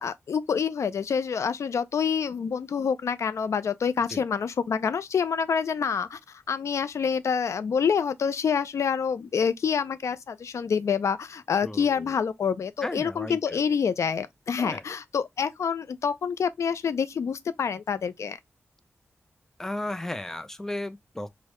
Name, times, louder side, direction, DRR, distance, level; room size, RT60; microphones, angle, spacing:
voice 1, 0.0-6.2 6.5-18.4, left 6 dB, 80° left, 0.3 m, -27 dB
voice 2, 11.6-12.1 12.8-13.6 14.6-14.8 19.6-21.3, left 1 dB, 10° left, 0.4 m, -35 dB
4.6 x 2.0 x 3.0 m
wide cardioid pair, 110°, 5 cm